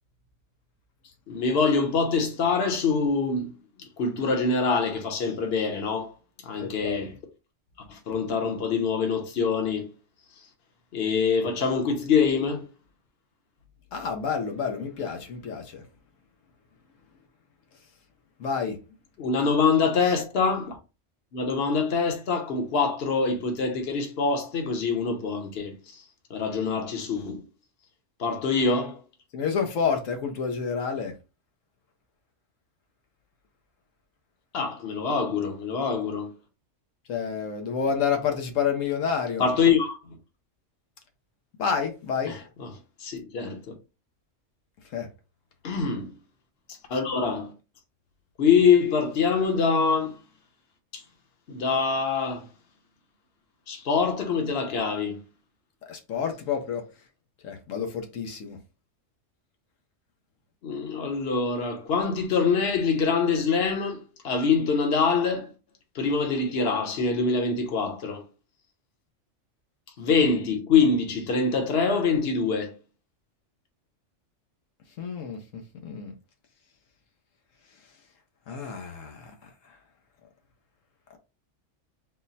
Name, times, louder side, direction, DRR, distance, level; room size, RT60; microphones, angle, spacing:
voice 1, 1.3-3.5 3.8-6.1 6.4-7.2 7.9-9.9 10.9-12.6 19.2-20.8 21.3-25.8 26.3-27.4 28.2-29.0 34.5-36.3 39.4-40.0 42.2-43.6 45.6-46.1 46.9-47.5 48.4-50.1 50.9-51.0 51.5-52.5 53.7-55.2 60.6-65.5 65.9-68.2 70.0-72.7, left 5 dB, 55° left, 1.1 m, -24 dB
voice 2, 13.9-15.8 18.4-18.8 29.3-31.1 37.1-39.4 41.6-42.3 44.9-45.1 55.9-56.8 57.4-58.6 75.0-76.1 78.5-79.3, left 6 dB, 90° left, 1.2 m, -29 dB
4.1 x 2.1 x 4.0 m
omnidirectional pair, 1.3 m